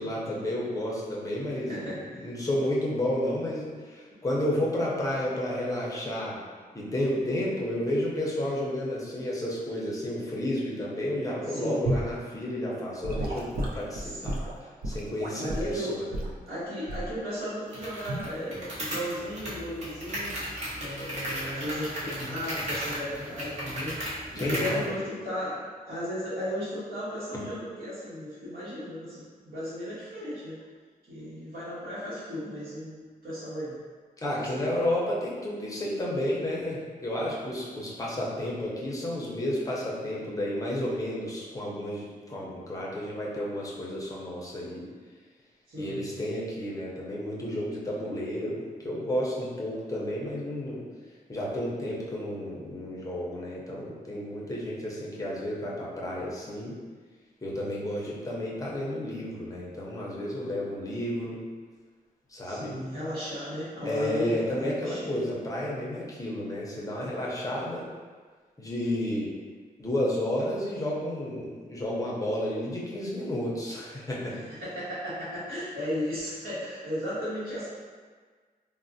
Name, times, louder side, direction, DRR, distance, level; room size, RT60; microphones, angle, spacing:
voice 1, 0.0-6.4 6.7-13.5 13.7-16.0 24.4-24.9 34.2-44.8 45.8-50.8 51.3-56.8 57.4-61.4 62.3-62.8 63.8-67.8 68.6-69.3 69.8-74.4, left 1 dB, 20° left, -5 dB, 0.5 m, -31 dB
voice 2, 1.7-2.3 11.4-12.0 14.0-14.4 15.4-16.0 16.5-20.4 20.8-30.6 31.1-33.8 34.3-34.7 45.7-46.0 62.4-65.2 74.3-77.7, equal, 70° right, -12 dB, 1.1 m, -35 dB
Gurgling / Sink (filling or washing) / Liquid, 11.9-12.1 13.0-15.7 16.1-16.4 16.9-17.2 18.1-18.3, right 1 dB, 90° right, 0.5 m, -31 dB
sound 1, 17.7-24.8, equal, 45° right, 0.8 m, -35 dB
4.0 x 2.0 x 2.6 m, 1.5 s
wide cardioid pair, 170°, 15 cm